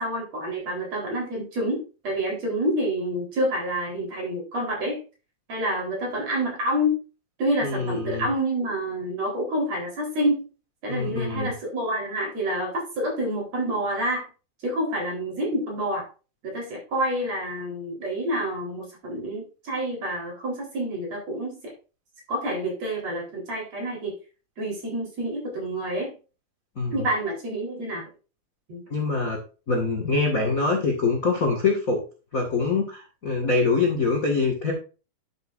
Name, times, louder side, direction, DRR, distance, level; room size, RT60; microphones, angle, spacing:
voice 1, 0.0-5.0 5.5-7.0 7.4-10.5 10.8-14.3 14.6-16.1 16.4-21.7 22.3-24.2 24.6-26.1 26.9-28.0 28.7-28.8, equal, 45° right, -1 dB, 5.1 m, -28 dB
voice 2, 7.6-8.3 10.9-11.5 26.7-27.0 28.9-29.4 29.7-32.0 32.3-34.7, left 4 dB, 35° left, 0 dB, 1.5 m, -24 dB
11.0 x 8.0 x 2.6 m, 0.33 s
omnidirectional pair, 4.1 m